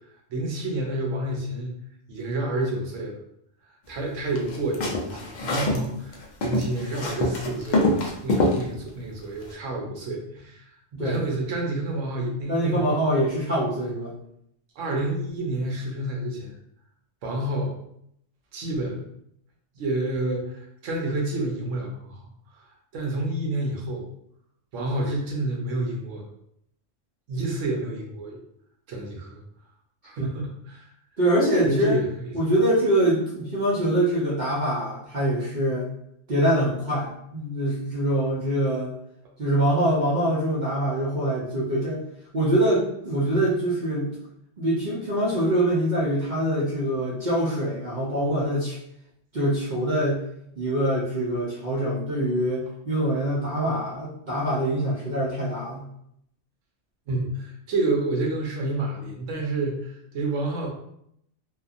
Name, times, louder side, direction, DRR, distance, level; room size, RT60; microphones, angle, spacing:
voice 1, 0.3-1.7 2.1-3.2 3.9-10.6 11.0-13.3 14.8-16.5 17.2-17.7 18.5-19.1 19.8-22.3 22.9-24.1 24.7-26.3 27.3-28.4 28.9-29.4 30.0-30.9 31.6-32.3 57.1-60.7, right 2 dB, 75° right, 0 dB, 1.0 m, -29 dB
sound 1, 4.3-5.8 6.1-8.6, left 2 dB, 60° left, 0.4 m, -24 dB
voice 2, 12.5-14.1 30.2-30.3 31.2-32.0 32.3-35.9 36.3-38.9 39.4-42.0 42.3-44.1 44.6-48.8 49.3-50.2 50.6-55.8, right 1 dB, 50° right, -6 dB, 0.6 m, -24 dB
2.8 x 2.3 x 2.4 m, 0.74 s
omnidirectional pair, 1.3 m